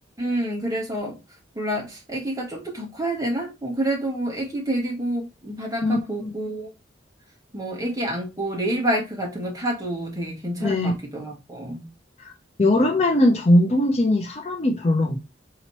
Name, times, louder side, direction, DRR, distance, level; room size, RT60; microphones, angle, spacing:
voice 1, 0.2-1.1 1.5-6.7 7.5-11.9, right 1 dB, 20° right, 1.3 m, -28 dB
voice 2, 5.8-6.3 10.6-10.9 12.2-12.3 12.6-15.2, left 1 dB, 35° left, 0.5 m, -20 dB
4.2 x 2.9 x 2.9 m
head